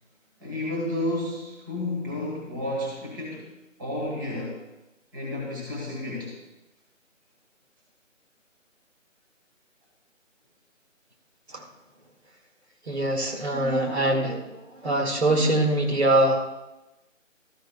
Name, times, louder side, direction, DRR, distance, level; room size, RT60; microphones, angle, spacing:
voice 1, 0.4-3.5 3.8-4.6 5.1-6.3, left 1 dB, 15° right, -3 dB, 1.5 m, -31 dB
voice 2, 12.9-16.4, right 1 dB, 55° right, 2 dB, 1.9 m, -23 dB
14.5 x 13.0 x 2.3 m, 1.0 s
figure-of-eight pair, 155°, 40 cm